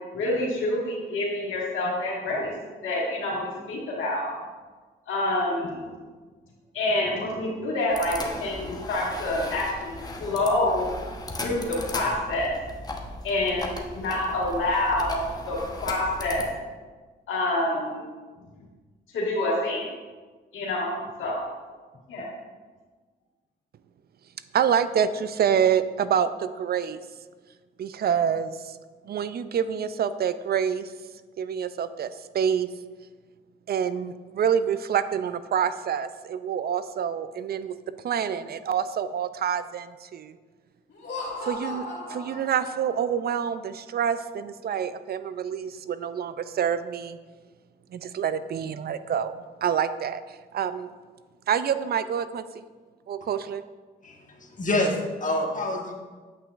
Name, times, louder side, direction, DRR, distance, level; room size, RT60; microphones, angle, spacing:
voice 1, 0.1-2.5 2.8-4.3 5.1-5.9 6.7-9.9 10.2-10.9 11.4-12.5 13.2-16.5 17.3-18.1 19.1-19.9 20.5-21.4 22.1-22.3, left 1 dB, 80° left, -4 dB, 1.7 m, -27 dB
sound 1, 7.9-16.5, left 2 dB, 20° left, 1.0 m, -37 dB
voice 2, 24.5-27.0 27.8-28.8 29.1-30.9 31.4-32.7 33.7-37.7 38.0-40.3 41.4-47.2 47.9-50.9 51.5-52.4 53.1-53.6, right 8 dB, 50° right, 13 dB, 0.4 m, -27 dB
Laughter, 40.9-43.2, left 2 dB, 65° left, 1.9 m, -36 dB
voice 3, 54.0-55.9, left 1 dB, 40° left, 0 dB, 1.4 m, -27 dB
8.3 x 5.7 x 2.5 m, 1.4 s
supercardioid pair, 55°, 20 cm